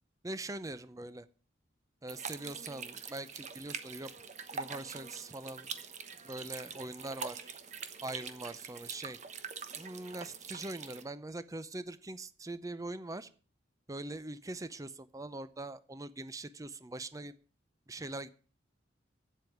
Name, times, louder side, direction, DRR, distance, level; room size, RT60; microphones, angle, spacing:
voice 1, 0.2-1.3 2.0-4.1 4.5-5.7 6.2-7.5 8.0-9.2 9.8-13.3 13.9-17.3 17.9-18.3, right 2 dB, 15° right, 14 dB, 0.6 m, -42 dB
sound 1, 2.1-11.0, right 6 dB, 40° right, 1.1 m, -44 dB
8.9 x 8.0 x 9.1 m, 0.40 s
head